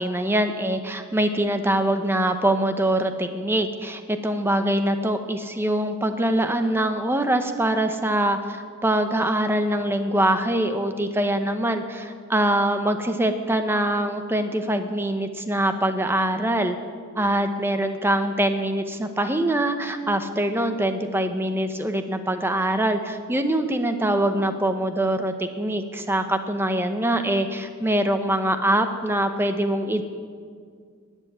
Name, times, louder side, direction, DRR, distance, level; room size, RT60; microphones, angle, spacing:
voice 1, 0.0-16.8 17.2-30.0, right 1 dB, 10° right, 7 dB, 0.8 m, -23 dB
13.0 x 8.2 x 9.4 m, 2.1 s
head